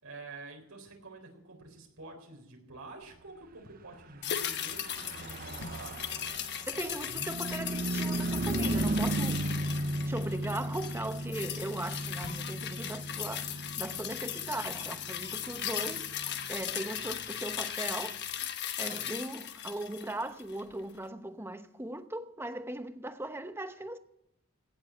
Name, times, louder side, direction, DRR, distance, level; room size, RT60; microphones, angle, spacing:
voice 1, 0.0-6.0, right 3 dB, 85° right, 3.9 m, -48 dB
sound 1, 4.2-20.7 21.0-21.1, left 9 dB, 55° left, 1.1 m, -38 dB
Car passing by / Truck, 4.3-18.0, right 1 dB, 45° right, 0.7 m, -36 dB
voice 2, 6.7-9.5 10.0-18.2 18.8-24.0, right 1 dB, 10° right, 0.9 m, -39 dB
17.0 x 7.6 x 8.5 m
head